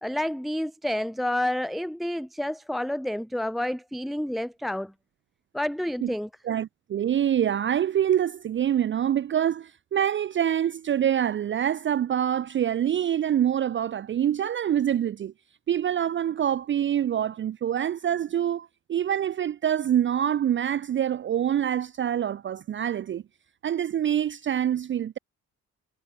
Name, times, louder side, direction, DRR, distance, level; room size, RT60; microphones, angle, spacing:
voice 1, 0.0-4.9 5.5-6.3, left 1 dB, ahead, 0.6 m, -29 dB
voice 2, 6.4-15.3 15.7-23.2 23.6-25.2, right 10 dB, 40° right, 0.5 m, -25 dB
cardioid pair, 75°, 30 cm